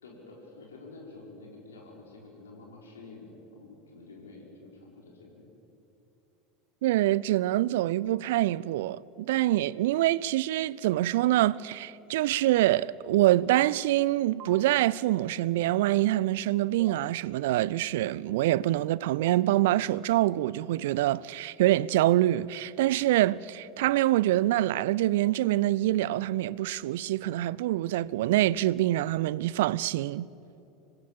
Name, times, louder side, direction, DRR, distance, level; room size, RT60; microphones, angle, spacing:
voice 1, 0.0-5.5, left 3 dB, 70° left, 4.4 m, -49 dB
voice 2, 6.8-30.3, right 15 dB, 60° right, 0.4 m, -25 dB
sound 1, 14.4-14.6 16.8-17.0 19.2-19.4 21.6-22.0, right 8 dB, 40° right, 1.3 m, -43 dB
26.0 x 20.0 x 7.3 m
figure-of-eight pair, 75°, 0 cm